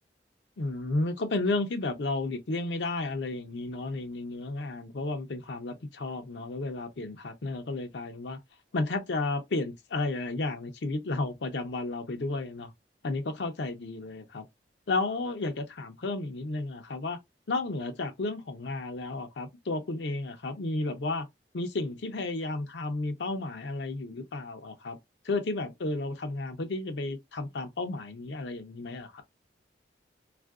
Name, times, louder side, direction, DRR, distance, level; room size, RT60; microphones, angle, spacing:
voice 1, 0.6-8.4 8.7-12.7 13.0-14.4 14.9-17.2 17.5-21.3 21.5-25.0 25.2-29.2, left 2 dB, 80° left, 0.6 m, -32 dB
3.5 x 2.5 x 2.3 m
head